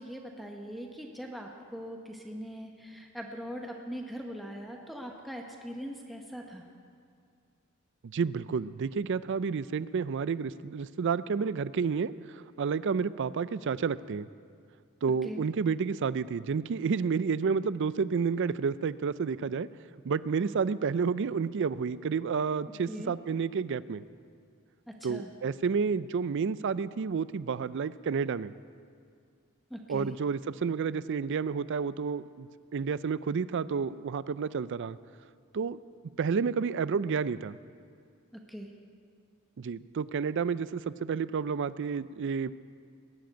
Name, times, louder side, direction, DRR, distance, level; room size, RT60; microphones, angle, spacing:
voice 1, 0.0-6.6 15.2-15.4 22.9-23.1 24.9-25.3 29.7-30.2 38.3-38.7, equal, ahead, 1 dB, 1.0 m, -41 dB
voice 2, 8.1-14.3 15.0-19.7 20.0-24.0 25.0-28.5 29.9-35.0 35.5-35.8 36.2-37.6 39.6-42.5, right 5 dB, 60° right, 17 dB, 0.4 m, -30 dB
20.0 x 7.7 x 9.1 m, 2.3 s
head